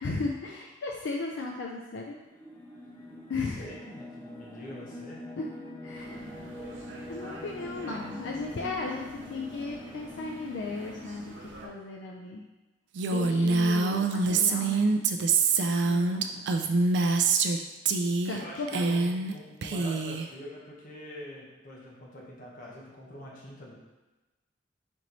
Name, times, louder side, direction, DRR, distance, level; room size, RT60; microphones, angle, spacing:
voice 1, 0.0-2.2 3.3-3.7 5.4-5.5 5.8-6.2 7.1-11.3 11.6-12.4 13.1-14.9 15.2-15.4 15.8-16.4 18.2-18.8, left 3 dB, 80° left, -1 dB, 0.4 m, -35 dB
sound 1, 2.2-11.4, left 1 dB, 15° left, 0.5 m, -44 dB
voice 2, 3.3-5.2 18.1-23.7, equal, 45° left, -4 dB, 1.1 m, -45 dB
sound 2, 5.9-11.7, right 2 dB, 90° right, 0.7 m, -47 dB
Female speech woman speaking, 13.0-17.6 17.9-18.4 18.7-19.3 19.6-20.3, right 4 dB, 65° right, 0.3 m, -25 dB
4.4 x 3.1 x 3.9 m, 1.1 s
head